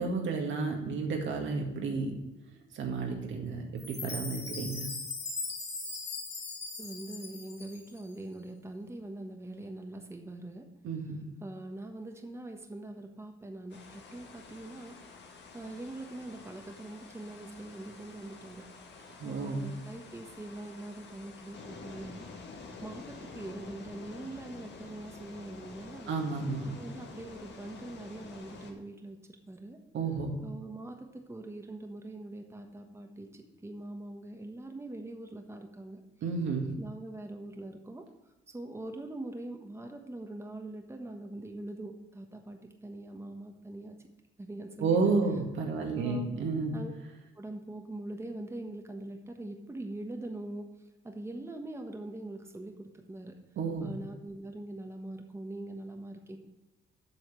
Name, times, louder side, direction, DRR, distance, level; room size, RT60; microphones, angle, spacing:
voice 1, 0.0-2.2 2.7-4.9 10.8-11.3 19.2-19.6 26.1-26.7 29.9-30.3 36.2-36.7 44.8-46.7 53.6-53.9, right 4 dB, 75° right, 2 dB, 2.0 m, -31 dB
Chime, 3.8-8.0, left 3 dB, 35° left, 2.4 m, -39 dB
voice 2, 6.8-10.7 11.4-15.0 15.5-18.7 19.2-22.3 22.8-26.1 26.6-29.2 29.5-29.8 30.4-36.0 36.8-38.0 38.5-44.0 44.4-45.0 45.7-46.3 46.7-46.9 47.4-50.7 51.0-53.4 53.8-56.4, right 2 dB, 15° right, 4 dB, 1.2 m, -43 dB
sound 1, 13.7-28.7, left 4 dB, 60° left, 1.7 m, -49 dB
7.8 x 5.6 x 6.8 m, 1.0 s
cardioid pair, 90°, 20 cm